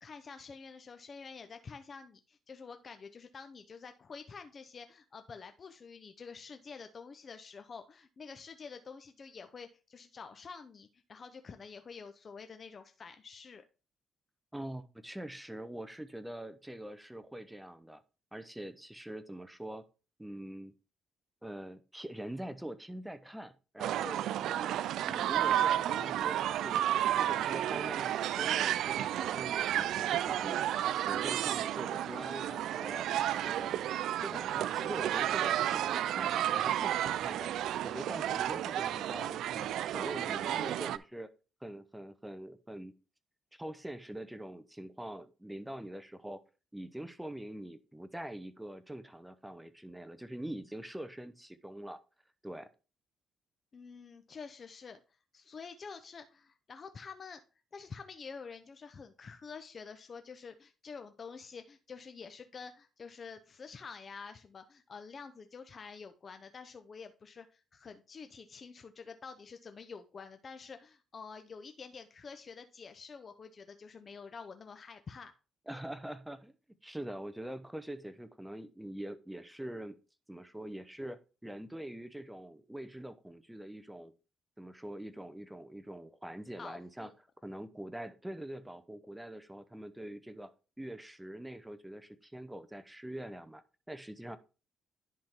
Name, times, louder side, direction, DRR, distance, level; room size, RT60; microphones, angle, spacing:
voice 1, 0.0-13.6 53.7-55.0 55.3-57.4 57.7-75.3 86.6-87.1, left 5 dB, 40° left, 7 dB, 0.7 m, -48 dB
voice 2, 14.5-18.0 18.3-19.8 20.2-20.7 21.4-26.8 27.2-30.6 30.9-33.1 33.4-33.9 34.2-41.3 41.6-42.9 43.5-46.4 46.7-52.0 52.4-52.7 75.7-76.5 76.8-80.0 80.3-84.1 84.6-87.1 87.4-90.5 90.8-94.4, right 1 dB, 5° right, 12 dB, 0.7 m, -44 dB
sound 1, 23.8-41.0, right 11 dB, 80° right, 0.3 m, -32 dB
10.5 x 3.7 x 4.4 m, 0.32 s
cardioid pair, 90°, 0 cm